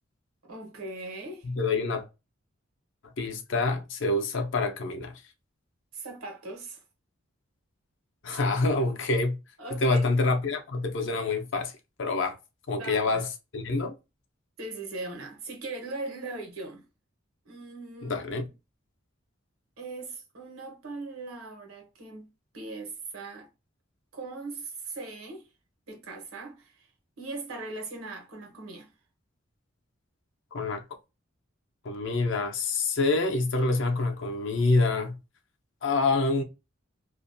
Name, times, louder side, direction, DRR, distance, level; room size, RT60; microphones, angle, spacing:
voice 1, 0.4-1.5 5.9-6.8 8.3-8.4 9.6-10.0 12.7-13.2 14.6-16.8 17.4-18.5 19.8-22.2 22.5-23.5 24.1-25.5 25.9-26.9 27.2-28.9, right 2 dB, 90° right, 1.0 m, -39 dB
voice 2, 1.4-2.0 3.2-5.1 8.2-9.4 9.7-11.7 12.0-12.4 12.7-13.3 13.5-13.9 18.0-18.5 30.5-30.8 31.8-35.2 35.8-36.4, left 3 dB, 60° left, 0.6 m, -26 dB
2.5 x 2.2 x 2.5 m
head